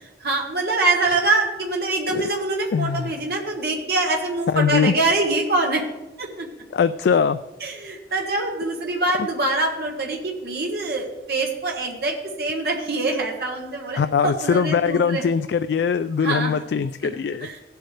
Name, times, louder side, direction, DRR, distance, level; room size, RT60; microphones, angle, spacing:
voice 1, 0.2-5.8 6.2-6.5 7.6-15.2 16.2-16.5 17.4-17.6, right 2 dB, 60° right, 0 dB, 1.4 m, -24 dB
voice 2, 2.7-3.1 4.5-5.0 6.7-7.4 14.0-17.5, left 6 dB, 75° left, 11 dB, 0.3 m, -21 dB
16.5 x 7.9 x 3.3 m, 1.0 s
head